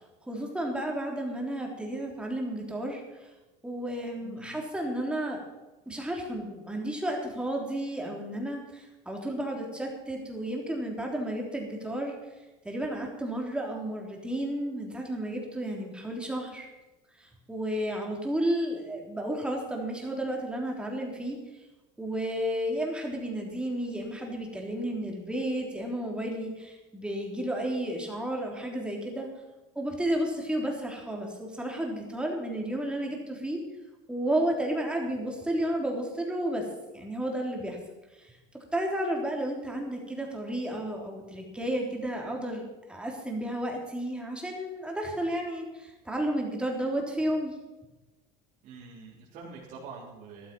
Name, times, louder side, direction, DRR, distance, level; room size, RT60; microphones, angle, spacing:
voice 1, 0.3-3.3 3.6-5.4 5.8-12.1 12.6-16.7 17.2-21.4 22.0-29.3 29.7-33.6 34.1-36.6 36.9-37.8 38.1-38.3 38.7-47.5, right 1 dB, 5° right, 0 dB, 3.4 m, -32 dB
voice 2, 4.2-4.6 48.6-50.5, right 4 dB, 55° right, -7 dB, 3.6 m, -45 dB
13.5 x 13.0 x 5.5 m, 1.1 s
cardioid pair, 130°, 16 cm